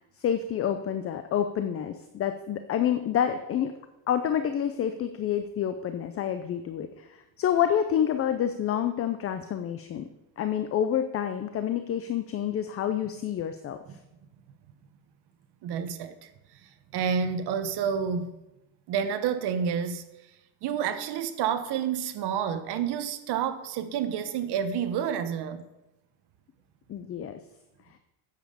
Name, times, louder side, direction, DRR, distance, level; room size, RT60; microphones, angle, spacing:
voice 1, 0.2-3.7 4.1-10.0 10.4-13.8 26.9-27.4, left 9 dB, 30° left, 9 dB, 0.5 m, -28 dB
voice 2, 15.6-16.3 16.9-18.3 18.9-20.0 20.6-25.6, right 7 dB, 50° right, 10 dB, 1.1 m, -29 dB
9.2 x 7.5 x 6.7 m, 0.95 s
cardioid pair, 150°, 50 cm